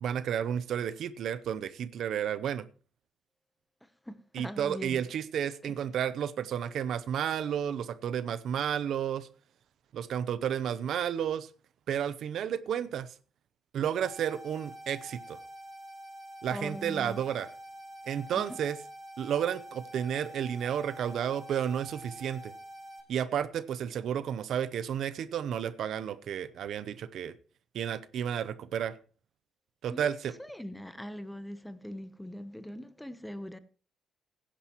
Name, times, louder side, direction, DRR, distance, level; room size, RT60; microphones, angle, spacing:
voice 1, 0.0-2.6 4.3-9.3 9.9-11.5 11.9-13.1 13.7-15.4 16.4-17.5 18.1-18.8 19.2-22.5 23.1-27.3 27.7-28.9 29.8-30.3, right 9 dB, 70° right, 0.7 m, -32 dB
voice 2, 3.8-5.0 5.6-5.7 16.5-17.2 18.3-18.5 29.9-30.1 30.4-33.6, left 1 dB, 5° left, 0.9 m, -41 dB
sound 1, 14.0-23.0, right 1 dB, 25° right, 4.6 m, -47 dB
16.5 x 10.0 x 3.0 m
cardioid pair, 90°, 0 cm